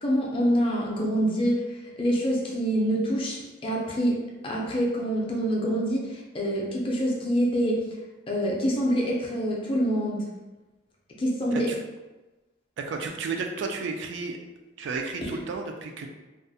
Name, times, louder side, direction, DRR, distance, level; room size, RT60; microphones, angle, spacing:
voice 1, 0.0-4.2 4.4-7.8 8.3-10.3 11.2-11.7, equal, 30° left, -3 dB, 0.4 m, -26 dB
voice 2, 12.8-14.4 14.8-16.1, right 4 dB, 70° right, 3 dB, 0.3 m, -32 dB
2.3 x 2.0 x 2.6 m, 1.1 s
head